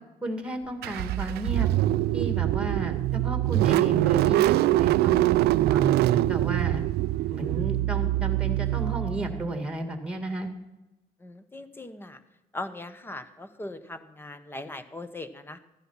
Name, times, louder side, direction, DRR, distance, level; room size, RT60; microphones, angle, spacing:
voice 1, 0.2-1.7 2.1-5.2 5.7-6.8 7.3-10.5, right 1 dB, 5° right, 6 dB, 2.0 m, -33 dB
Car / Engine starting, 0.8-9.6, right 15 dB, 70° right, 0.4 m, -24 dB
voice 2, 11.2-12.2 12.5-15.6, left 2 dB, 15° left, 11 dB, 1.1 m, -39 dB
14.5 x 10.0 x 5.7 m, 1.0 s
cardioid pair, 110°, 17 cm